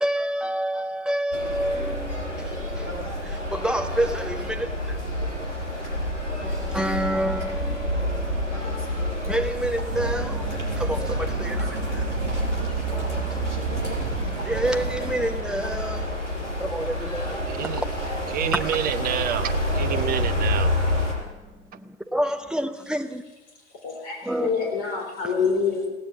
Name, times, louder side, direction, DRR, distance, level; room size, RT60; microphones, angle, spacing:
voice 1, 0.0-3.1 3.5-4.7 6.4-8.3 8.6-8.7 9.3-10.4 10.8-11.6 11.9-12.0 12.9-13.4 14.4-16.1 16.6-17.3 22.1-23.2 24.3-24.8, right 1 dB, ahead, 0.9 m, -28 dB
sound 1, 1.3-21.1, left 1 dB, 75° left, 5.6 m, -28 dB
sound 2, 9.9-15.3, right 12 dB, 60° right, 0.8 m, -32 dB
voice 2, 17.4-17.8 18.3-20.8, right 10 dB, 25° right, 0.6 m, -28 dB
voice 3, 23.8-25.9, left 5 dB, 50° left, 4.1 m, -26 dB
16.5 x 9.6 x 8.7 m
figure-of-eight pair, 90°, 36 cm